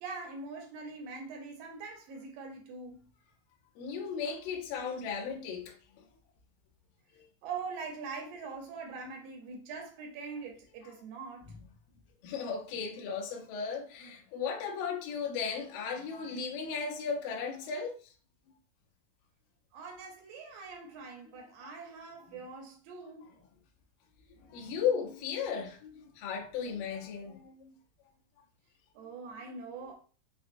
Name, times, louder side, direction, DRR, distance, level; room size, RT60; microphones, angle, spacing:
voice 1, 0.0-3.1 7.4-11.5 19.7-23.4 29.0-29.9, right 4 dB, 75° right, 2.2 m, -43 dB
voice 2, 3.8-6.0 7.1-7.3 11.5-11.6 12.2-18.1 21.3-21.4 21.6-21.7 24.4-27.7, left 6 dB, 75° left, 2.3 m, -36 dB
6.0 x 2.3 x 2.5 m
omnidirectional pair, 4.3 m